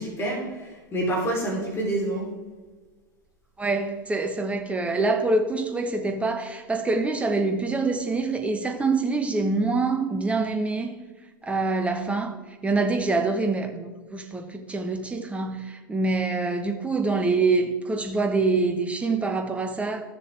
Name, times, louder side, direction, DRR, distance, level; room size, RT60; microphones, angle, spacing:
voice 1, 0.0-2.3, right 1 dB, 20° left, 3.4 m, -27 dB
voice 2, 3.6-10.9 11.4-12.3 12.6-20.0, right 3 dB, 10° right, 1.2 m, -25 dB
14.5 x 6.7 x 3.4 m
figure-of-eight pair, 90°, 11 cm